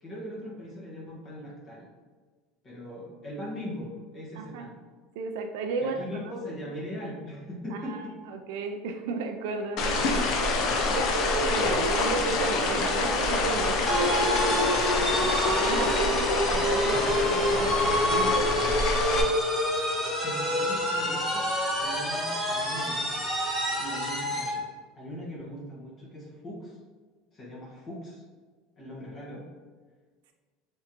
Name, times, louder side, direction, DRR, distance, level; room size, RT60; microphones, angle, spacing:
voice 1, 0.0-1.9 2.6-4.8 5.8-8.2 20.2-21.5 21.8-23.2 23.8-24.7 24.9-26.8 27.3-28.2 28.8-29.5, equal, 30° left, -4 dB, 1.2 m, -40 dB
voice 2, 4.4-4.7 5.2-6.3 7.7-10.1 10.5-14.9 15.6-18.5, right 4 dB, 80° right, 5 dB, 0.3 m, -33 dB
sound 1, 9.8-19.2, left 3 dB, 50° left, 0.5 m, -27 dB
sound 2, 13.9-24.6, left 1 dB, 10° left, 1.3 m, -27 dB
3.6 x 3.4 x 2.9 m, 1.5 s
cardioid pair, 155°, 0 cm